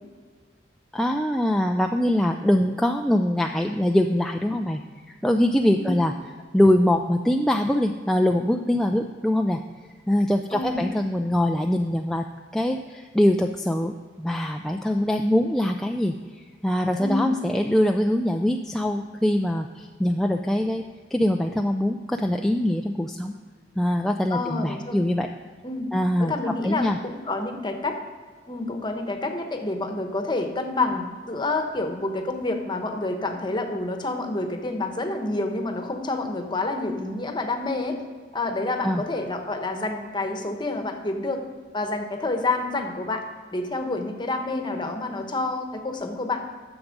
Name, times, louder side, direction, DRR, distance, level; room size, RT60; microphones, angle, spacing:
voice 1, 0.9-4.8 5.2-6.1 6.5-9.6 10.1-12.3 12.5-16.1 16.6-20.8 21.1-23.3 23.8-25.3 25.9-27.0 38.8-39.0, left 1 dB, ahead, 2 dB, 0.3 m, -23 dB
voice 2, 10.5-10.9 17.0-17.4 24.3-25.0 25.6-25.9 26.2-28.0 28.5-38.0 38.3-41.5 41.7-43.3 43.5-46.4, left 2 dB, 25° left, 4 dB, 1.0 m, -28 dB
10.5 x 7.1 x 5.2 m, 1.5 s
head